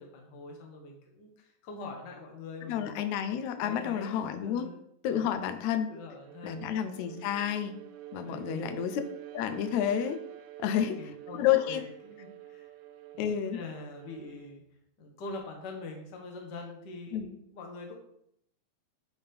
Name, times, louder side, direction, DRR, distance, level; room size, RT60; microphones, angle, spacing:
voice 1, 0.0-3.0 3.5-4.8 5.1-5.6 5.9-6.6 8.1-8.8 10.6-12.7 13.5-14.6 15.0-18.0, left 3 dB, 55° left, 1 dB, 1.3 m, -44 dB
voice 2, 2.7-4.7 5.0-5.9 6.4-7.7 8.1-9.0 9.3-10.2 10.6-11.8 13.2-13.6 17.1-17.3, left 10 dB, 80° left, 8 dB, 1.9 m, -30 dB
Bowed string instrument, 6.2-14.6, right 12 dB, 90° right, 2.0 m, -47 dB
8.7 x 3.6 x 3.3 m, 0.72 s
omnidirectional pair, 3.3 m